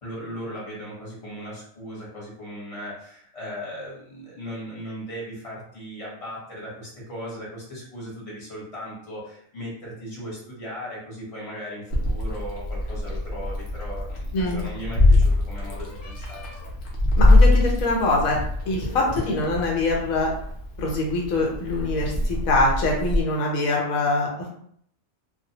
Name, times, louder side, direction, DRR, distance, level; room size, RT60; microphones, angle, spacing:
voice 1, 0.0-16.5, equal, 30° left, -5 dB, 1.0 m, -37 dB
Meow, 11.9-23.2, left 2 dB, 60° left, 0.8 m, -23 dB
voice 2, 17.2-18.4 18.7-20.3 20.8-24.5, left 2 dB, 80° left, -1 dB, 1.0 m, -24 dB
2.4 x 2.1 x 2.7 m, 0.65 s
omnidirectional pair, 1.4 m